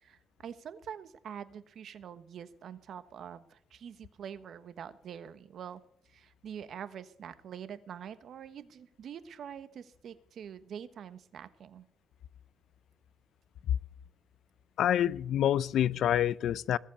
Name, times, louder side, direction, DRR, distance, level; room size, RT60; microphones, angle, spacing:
voice 1, 0.0-5.8 6.1-11.9, right 8 dB, 65° right, 1.2 m, -45 dB
voice 2, 14.8-16.8, left 11 dB, 75° left, 0.5 m, -27 dB
20.0 x 7.5 x 6.9 m
cardioid pair, 90°, 0 cm